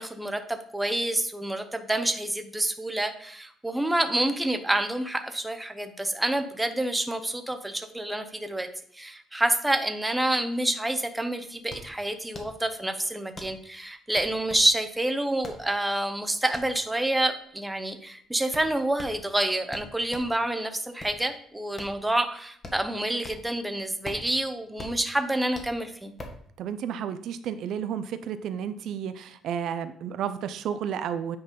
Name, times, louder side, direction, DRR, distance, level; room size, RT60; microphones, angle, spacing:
voice 1, 0.0-8.7 8.9-26.1, right 1 dB, 5° right, 7 dB, 0.7 m, -28 dB
sound 1, 11.1-20.4 20.8-23.6 23.9-26.5, left 2 dB, 25° left, 1.3 m, -44 dB
voice 2, 26.6-31.4, right 8 dB, 60° right, 11 dB, 0.5 m, -32 dB
8.8 x 4.0 x 5.3 m, 0.63 s
cardioid pair, 165°, 0 cm